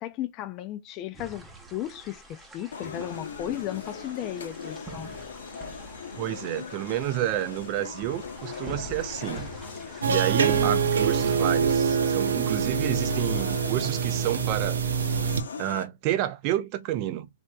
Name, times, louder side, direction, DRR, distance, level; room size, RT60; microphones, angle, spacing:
voice 1, 0.0-5.1 10.4-10.9, left 12 dB, 30° left, 0.3 m, -35 dB
sound 1, 1.1-11.6, right 2 dB, 10° right, 0.8 m, -45 dB
sound 2, 2.7-15.8, left 5 dB, 85° left, 0.8 m, -40 dB
voice 2, 6.2-9.5 10.1-14.8 15.6-17.3, right 13 dB, 35° right, 0.5 m, -30 dB
sound 3, 10.0-15.4, right 6 dB, 85° right, 0.6 m, -25 dB
3.3 x 2.7 x 2.2 m
hypercardioid pair, 145°, 0 cm